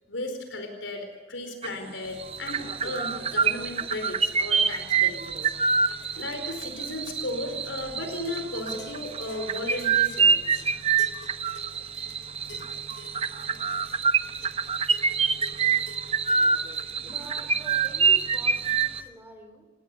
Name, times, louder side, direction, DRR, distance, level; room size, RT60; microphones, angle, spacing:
voice 1, 0.1-5.5 6.1-10.6, left 1 dB, 85° left, 6 dB, 4.4 m, -35 dB
sound 1, 1.6-1.9 2.2-19.0, right 6 dB, 30° right, 0.9 m, -26 dB
sound 2, 2.0-19.1, left 2 dB, 55° left, 3.2 m, -50 dB
voice 2, 17.0-19.7, equal, 10° right, 6 dB, 3.3 m, -46 dB
29.0 x 19.5 x 8.4 m, 1.1 s
head